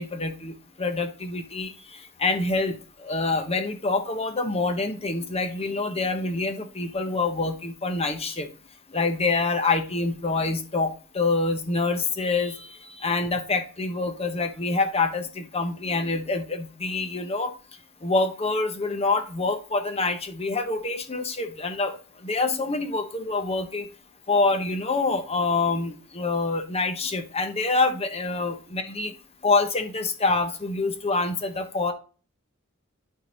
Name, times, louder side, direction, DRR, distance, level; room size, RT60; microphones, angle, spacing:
voice 1, 0.0-8.5 8.9-17.5 18.0-22.0 22.2-23.9 24.3-29.1 29.4-31.9, left 3 dB, 30° left, 7 dB, 1.1 m, -26 dB
11.5 x 3.9 x 4.1 m, 0.36 s
head